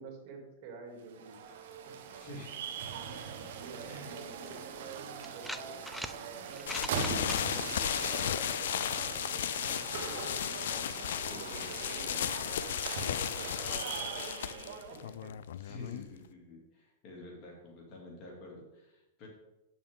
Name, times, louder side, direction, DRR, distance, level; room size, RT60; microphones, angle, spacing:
voice 1, 0.0-1.4 1.8-1.9 3.6-5.8 6.4-10.4 11.4-15.3, right 4 dB, 50° right, 1 dB, 2.7 m, -50 dB
sound 1, 1.0-15.1, right 6 dB, 70° right, 1.1 m, -41 dB
voice 2, 2.1-2.6 3.8-4.1 11.3-11.7 15.5-19.3, left 2 dB, 40° left, -2 dB, 2.3 m, -48 dB
sound 2, 5.2-6.2 6.5-7.4, equal, ahead, 0.4 m, -40 dB
sound 3, 6.7-16.3, left 10 dB, 80° left, 0.3 m, -35 dB
8.6 x 7.0 x 3.6 m, 0.94 s
supercardioid pair, 145°, 0 cm